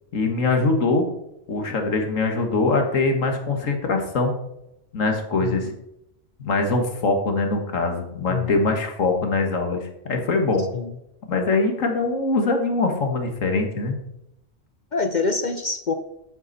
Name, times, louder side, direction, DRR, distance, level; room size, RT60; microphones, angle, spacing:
voice 1, 0.1-1.1 1.5-4.3 4.9-5.7 6.4-10.6 11.3-14.0, left 3 dB, 90° left, 4 dB, 2.0 m, -22 dB
voice 2, 5.4-5.7 8.3-8.6 10.7-10.9 14.9-15.9, left 4 dB, 45° left, 8 dB, 0.7 m, -26 dB
10.5 x 9.6 x 4.1 m, 0.83 s
omnidirectional pair, 1.3 m